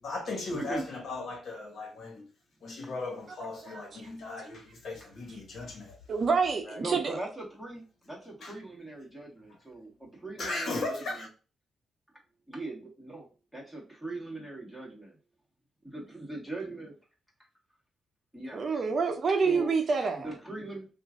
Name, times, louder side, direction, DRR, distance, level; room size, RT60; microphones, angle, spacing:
voice 1, 0.0-2.2 2.6-6.0 6.6-6.8 8.4-8.5 10.0-10.1 10.4-11.3, left 2 dB, 65° left, 1.2 m, -37 dB
voice 2, 0.5-0.8 5.0-5.1 5.6-5.7 6.8-11.3 12.5-15.2 15.8-17.0 18.3-18.9 19.4-19.7 20.0-20.9, right 2 dB, ahead, 1.6 m, -40 dB
voice 3, 6.1-7.2 18.5-20.3, right 5 dB, 50° right, 0.6 m, -27 dB
3.0 x 2.5 x 3.5 m
cardioid pair, 85°, 0 cm